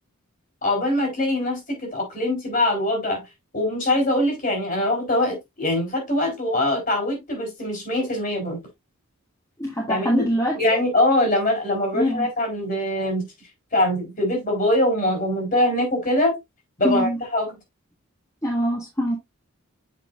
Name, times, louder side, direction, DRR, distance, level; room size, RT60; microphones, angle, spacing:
voice 1, 0.6-3.2 3.5-8.6 9.9-10.3 10.6-13.3 13.7-16.4 16.8-17.5, left 1 dB, 40° left, 3.9 m, -23 dB
voice 2, 9.6-10.8 11.9-12.3 16.8-17.2 18.4-19.2, equal, 15° left, 1.6 m, -24 dB
7.7 x 5.8 x 2.5 m
head